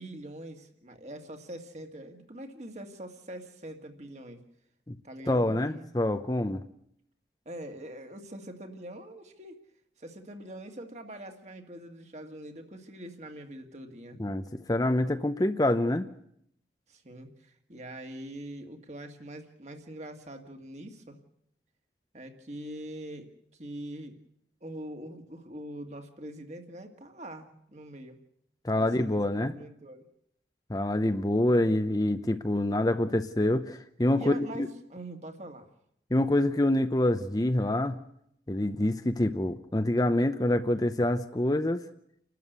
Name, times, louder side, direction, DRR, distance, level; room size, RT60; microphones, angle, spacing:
voice 1, 0.0-4.4 5.0-5.9 7.5-9.6 10.0-14.2 16.9-21.2 22.1-24.2 24.6-28.2 28.8-30.1 31.4-31.7 34.2-35.7, right 1 dB, 40° right, 5 dB, 2.1 m, -43 dB
voice 2, 5.3-6.6 14.2-16.1 28.6-29.5 30.7-34.7 36.1-38.0 38.5-41.8, left 1 dB, 20° left, 9 dB, 0.7 m, -26 dB
29.0 x 12.5 x 8.1 m, 0.72 s
head